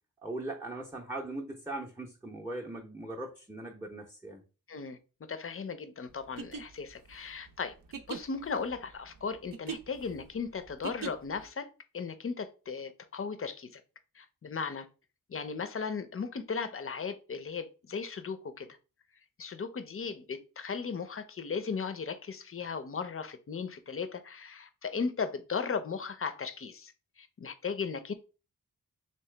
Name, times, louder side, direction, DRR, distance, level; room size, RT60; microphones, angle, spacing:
voice 1, 0.2-4.4, right 2 dB, 5° right, 0.6 m, -40 dB
voice 2, 4.7-5.0 5.3-7.7 8.1-13.8 14.2-14.9 15.3-18.7 19.4-26.9 27.2-28.1, left 5 dB, 40° left, 0.5 m, -36 dB
sound 1, 6.2-11.5, right 6 dB, 70° right, 0.6 m, -42 dB
3.1 x 2.9 x 3.2 m
cardioid pair, 65°, 35 cm